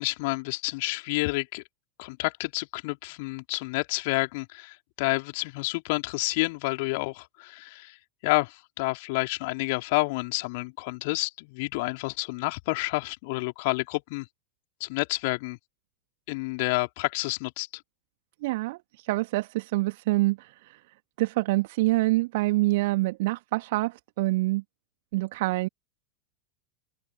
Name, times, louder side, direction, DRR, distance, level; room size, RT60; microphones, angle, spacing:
voice 1, 0.0-1.6 2.0-8.0 8.2-14.3 14.8-15.6 16.3-17.8, left 26 dB, 50° left, 3.9 m, -29 dB
voice 2, 18.4-18.8 19.1-20.4 21.2-24.6 25.1-25.7, right 20 dB, 50° right, 2.0 m, -25 dB
open air
figure-of-eight pair, 90°, 0 cm